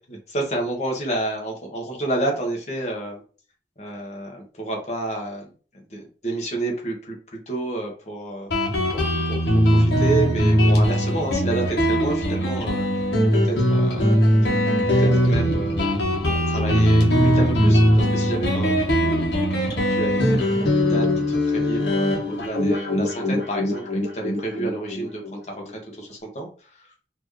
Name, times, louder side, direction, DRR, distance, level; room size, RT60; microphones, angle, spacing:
voice 1, 0.3-3.2 3.8-5.5 5.9-8.5 8.9-9.0 9.3-13.0 13.3-14.6 14.9-16.0 16.2-26.9, right 2 dB, 40° left, 1 dB, 1.3 m, -30 dB
Guitar, 8.5-25.7, equal, 70° left, 1.3 m, -20 dB
4.5 x 2.8 x 3.2 m, 0.39 s
head